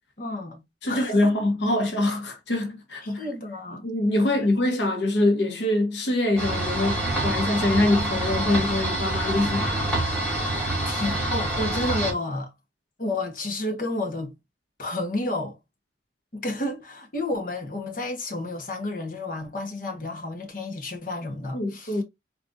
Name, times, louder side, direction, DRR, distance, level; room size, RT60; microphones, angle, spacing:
voice 1, 0.2-1.3 3.0-3.8 10.5-12.5 13.0-14.3 14.8-15.6 16.3-22.0, left 2 dB, 50° left, 1.4 m, -31 dB
voice 2, 0.8-3.3 3.8-9.7 21.5-22.0, left 1 dB, 85° left, 1.2 m, -24 dB
sound 1, 6.4-12.1, right 1 dB, 5° left, 2.3 m, -26 dB
4.4 x 3.9 x 2.6 m
head